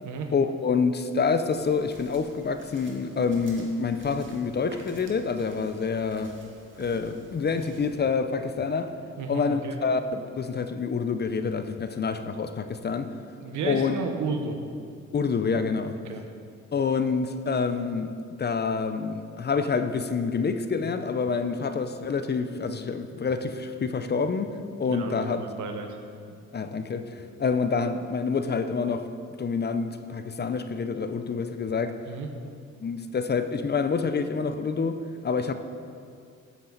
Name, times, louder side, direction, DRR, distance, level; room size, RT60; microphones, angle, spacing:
voice 1, 0.3-6.4 6.8-9.0 9.3-13.1 13.6-13.9 15.1-16.0 16.7-25.4 26.5-29.1 29.4-32.0 32.8-35.5, left 5 dB, 35° left, 9 dB, 0.7 m, -27 dB
sound 1, 1.5-8.0, right 2 dB, 40° right, 1.7 m, -50 dB
voice 2, 9.2-9.7 13.4-14.6 16.0-16.2 24.8-26.0 32.1-32.3, right 4 dB, 80° right, 4 dB, 1.2 m, -33 dB
13.0 x 7.4 x 4.0 m, 2.3 s
cardioid pair, 90°, 30 cm